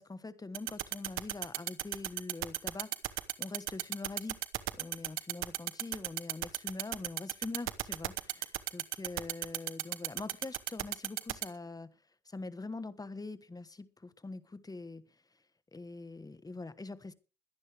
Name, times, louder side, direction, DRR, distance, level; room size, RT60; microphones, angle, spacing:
voice 1, 0.0-4.4 4.8-11.9 12.3-15.0 15.7-17.1, left 3 dB, 20° left, 1.3 m, -44 dB
sound 1, 0.5-11.4, right 15 dB, 90° right, 1.0 m, -33 dB
22.0 x 10.5 x 3.4 m
cardioid pair, 90°, 20 cm